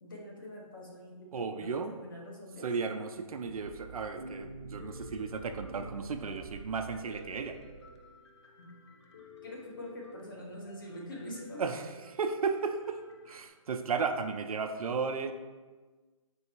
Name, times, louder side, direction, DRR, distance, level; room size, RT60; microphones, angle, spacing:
voice 1, 0.0-2.7 8.6-8.7 9.4-11.6, left 1 dB, 35° left, -2 dB, 0.8 m, -45 dB
voice 2, 1.3-1.9 2.6-7.6 11.6-15.3, right 5 dB, 80° right, 6 dB, 0.5 m, -34 dB
sound 1, 3.4-8.1, right 2 dB, 5° right, 0.7 m, -47 dB
Piano, 4.8-13.5, left 2 dB, 50° left, 0.4 m, -53 dB
4.6 x 3.4 x 2.9 m, 1.3 s
hypercardioid pair, 175°, 18 cm